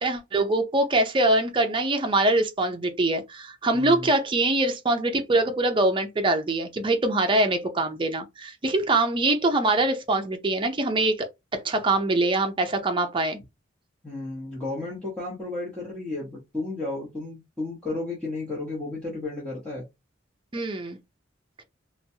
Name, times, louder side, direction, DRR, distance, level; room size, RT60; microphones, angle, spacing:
voice 1, 0.0-11.3 11.5-13.4 20.5-21.0, right 2 dB, 25° right, 0.5 m, -23 dB
voice 2, 3.7-4.1 14.0-19.8, left 2 dB, 5° left, 1.0 m, -33 dB
3.0 x 2.2 x 2.7 m
head